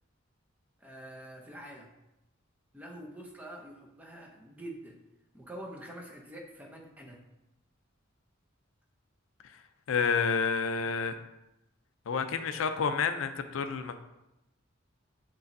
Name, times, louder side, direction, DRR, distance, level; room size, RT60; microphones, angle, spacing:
voice 1, 0.8-1.9 2.7-5.0 5.3-7.2, right 1 dB, 10° right, 0 dB, 0.6 m, -46 dB
voice 2, 9.9-11.1 12.1-14.0, left 5 dB, 70° left, 9 dB, 0.4 m, -29 dB
6.7 x 3.1 x 2.6 m, 0.92 s
head